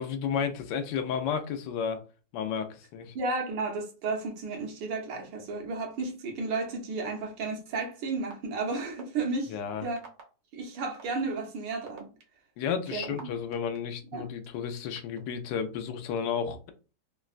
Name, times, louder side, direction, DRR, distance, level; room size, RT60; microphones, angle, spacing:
voice 1, 0.0-2.0 2.3-3.1 9.5-9.9 12.6-16.7, left 7 dB, 80° left, 1.2 m, -32 dB
voice 2, 3.1-9.5 9.8-10.0 10.5-12.1 12.9-13.3 14.1-14.3, right 3 dB, 80° right, 1.5 m, -33 dB
sound 1, 7.4-7.5 8.3-8.4 9.0-9.2 10.0-10.2 11.0-11.1 11.7-13.8 14.4-15.2, right 6 dB, 60° right, 1.3 m, -45 dB
3.8 x 2.1 x 2.4 m
omnidirectional pair, 2.0 m